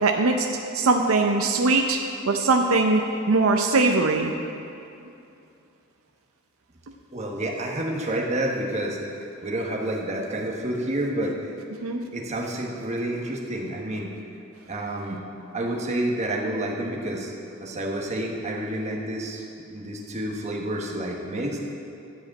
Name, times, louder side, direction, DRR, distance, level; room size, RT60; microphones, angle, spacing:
voice 1, 0.0-0.5 0.7-2.0 2.3-3.0 3.3-4.3 11.8-12.0, right 3 dB, 75° right, 3 dB, 0.6 m, -21 dB
voice 2, 7.1-9.0 9.4-11.5 12.1-14.1 14.7-15.2 15.5-17.3 17.6-19.4 19.7-21.8, right 1 dB, 35° right, -2 dB, 1.3 m, -29 dB
12.5 x 5.1 x 8.4 m, 2.7 s
head